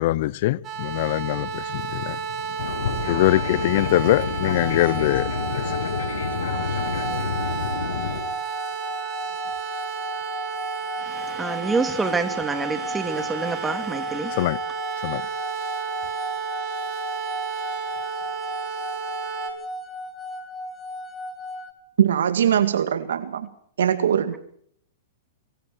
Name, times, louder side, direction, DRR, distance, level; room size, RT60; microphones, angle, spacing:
voice 1, 0.0-2.2 3.1-5.3 5.5-5.6 14.4-14.6 15.0-15.2, left 17 dB, 55° left, 0.9 m, -22 dB
sound 1, 0.6-19.5, right 6 dB, 30° right, 6.4 m, -32 dB
Fixed-wing aircraft airplane, 2.6-8.2, left 6 dB, 80° left, 6.7 m, -29 dB
sound 2, 4.5-21.7, left 1 dB, 15° left, 3.3 m, -36 dB
voice 2, 11.1-14.4, right 3 dB, 10° right, 3.2 m, -27 dB
voice 3, 22.0-23.5 23.8-24.4, right 9 dB, 80° right, 2.0 m, -21 dB
25.0 x 23.5 x 4.7 m
hypercardioid pair, 130°, 0 cm